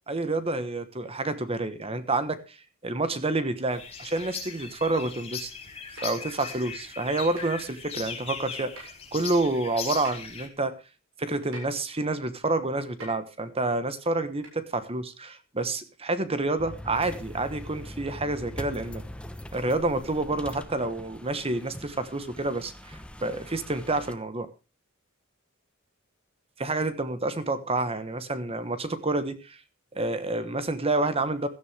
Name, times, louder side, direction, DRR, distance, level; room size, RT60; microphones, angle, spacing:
voice 1, 0.1-2.6 2.8-5.5 6.0-10.7 11.2-19.0 19.5-24.5 26.6-29.6 29.9-31.5, right 2 dB, 30° right, 12 dB, 1.3 m, -29 dB
sound 1, 3.7-10.5, left 5 dB, 30° left, 4.3 m, -39 dB
sound 2, 6.0-6.2 7.4-7.5 8.8-9.0 10.0-10.1 11.5-11.8 13.0-13.2 14.4-14.6 15.1-15.2, right 1 dB, 70° right, 7.7 m, -43 dB
sound 3, 16.6-24.1, left 1 dB, 5° left, 1.0 m, -42 dB
16.5 x 12.5 x 3.4 m, 0.30 s
head